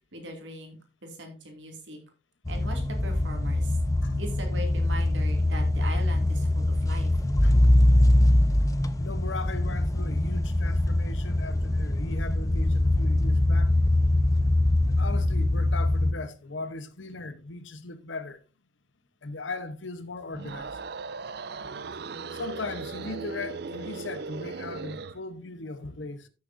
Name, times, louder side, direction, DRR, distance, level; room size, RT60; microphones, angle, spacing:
voice 1, 0.1-2.0 2.5-3.8 4.2-7.1 7.5-7.7, right 1 dB, 75° right, 2.6 m, -40 dB
sound 1, 2.4-16.1, left 1 dB, 15° left, 0.5 m, -23 dB
voice 2, 9.0-13.7 14.9-18.4 19.2-20.8 22.3-26.3, left 3 dB, 85° left, 1.0 m, -38 dB
sound 2, 20.3-25.2, right 4 dB, 55° right, 0.5 m, -37 dB
13.5 x 6.7 x 2.7 m
head